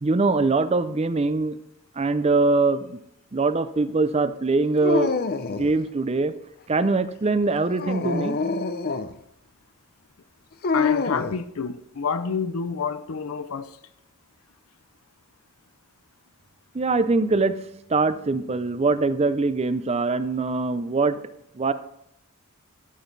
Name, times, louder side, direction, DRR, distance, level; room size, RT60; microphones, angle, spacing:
voice 1, 0.0-1.6 2.0-3.0 3.3-5.1 5.5-6.4 6.7-8.4 16.7-17.6 17.9-21.2 21.6-21.7, right 3 dB, 30° right, 0.5 m, -22 dB
Dog, 4.8-5.8 7.7-9.1 10.6-11.4, left 4 dB, 45° left, 0.6 m, -26 dB
voice 2, 10.7-13.8, left 5 dB, 85° left, 0.6 m, -29 dB
13.0 x 7.2 x 4.0 m
head